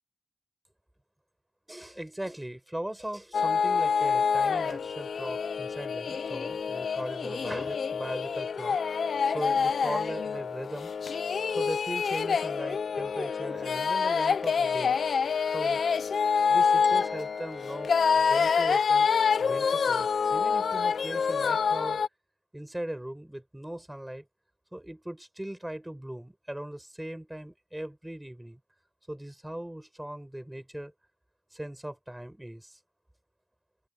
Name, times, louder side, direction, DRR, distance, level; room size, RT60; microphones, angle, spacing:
voice 1, 1.7-8.8 9.3-10.9 11.5-15.0 15.4-15.8 16.5-19.1 19.4-22.0 22.5-24.2 24.7-28.6 29.1-30.9 31.5-32.8, right 1 dB, 10° right, 5.1 m, -39 dB
sound 1, 3.3-22.1, left 6 dB, 90° left, 0.6 m, -27 dB
sound 2, 16.8-19.0, left 1 dB, 10° left, 6.0 m, -49 dB
open air
wide cardioid pair, 125°, 0 cm